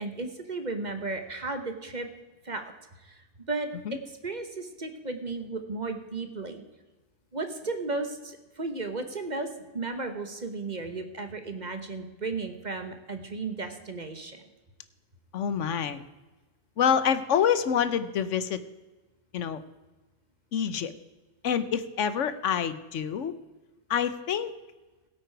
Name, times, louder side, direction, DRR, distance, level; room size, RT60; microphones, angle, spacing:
voice 1, 0.0-2.1 2.4-2.7 3.0-3.2 3.5-6.6 7.3-9.5 9.7-14.4, right 3 dB, 30° right, 7 dB, 1.0 m, -34 dB
voice 2, 15.3-16.0 16.8-18.6 19.3-19.6 20.5-20.9 21.4-23.3 23.9-24.5, left 8 dB, 60° left, 13 dB, 0.9 m, -27 dB
16.5 x 8.8 x 4.6 m, 1.2 s
omnidirectional pair, 1.7 m